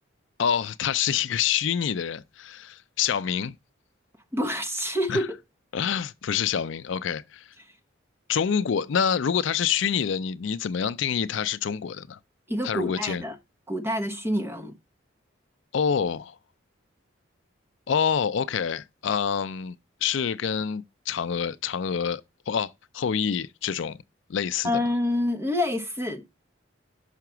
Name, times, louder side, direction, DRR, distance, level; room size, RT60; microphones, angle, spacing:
voice 1, 0.4-3.5 5.1-5.3 5.7-7.5 8.3-12.2 12.6-13.2 15.7-16.4 17.9-19.8 20.0-22.2 22.5-24.0 24.3-24.8, left 7 dB, 70° left, 0.4 m, -27 dB
voice 2, 4.3-5.4 12.5-13.3 13.7-14.7 24.6-26.4, left 1 dB, 10° right, 1.0 m, -27 dB
5.8 x 5.7 x 6.0 m
head